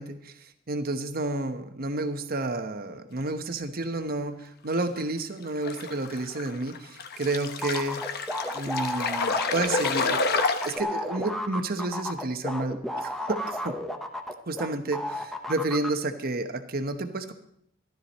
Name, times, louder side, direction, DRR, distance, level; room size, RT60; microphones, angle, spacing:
voice 1, 0.0-8.1 8.5-13.8 14.5-17.3, right 2 dB, 50° right, 9 dB, 1.0 m, -31 dB
sound 1, 4.7-5.0 5.6-10.8, left 4 dB, 50° left, 1.0 m, -29 dB
sound 2, 7.6-14.7 14.9-15.9, left 1 dB, ahead, 0.9 m, -32 dB
14.5 x 12.0 x 4.2 m, 0.68 s
head